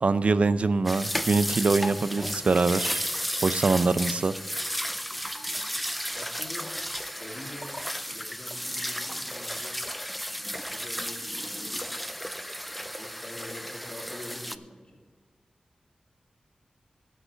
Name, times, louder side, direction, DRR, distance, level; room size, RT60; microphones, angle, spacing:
voice 1, 0.0-3.1 3.4-4.3, right 3 dB, 60° right, 14 dB, 0.5 m, -24 dB
sound 1, 0.9-14.6, equal, ahead, 0.5 m, -33 dB
voice 2, 6.1-6.7 7.1-7.7 8.1-9.8 10.5-11.9 12.6-15.0, left 1 dB, 40° left, -1 dB, 2.7 m, -45 dB
11.5 x 6.3 x 6.8 m, 1.5 s
wide cardioid pair, 60°, 2 cm